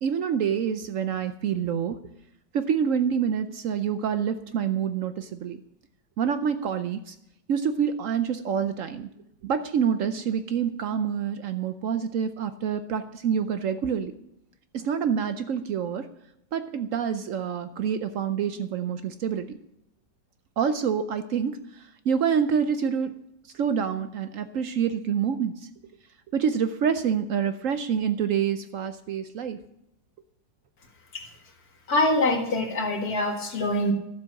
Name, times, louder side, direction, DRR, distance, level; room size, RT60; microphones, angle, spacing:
voice 1, 0.0-2.0 2.5-5.6 6.2-7.1 7.5-9.1 9.4-14.1 14.7-16.1 16.5-19.6 20.6-23.1 23.5-25.5 26.3-29.6, right 7 dB, 75° right, 10 dB, 0.7 m, -27 dB
voice 2, 31.9-33.9, left 1 dB, 50° left, 2 dB, 2.2 m, -24 dB
12.5 x 7.6 x 6.4 m, 0.81 s
omnidirectional pair, 2.1 m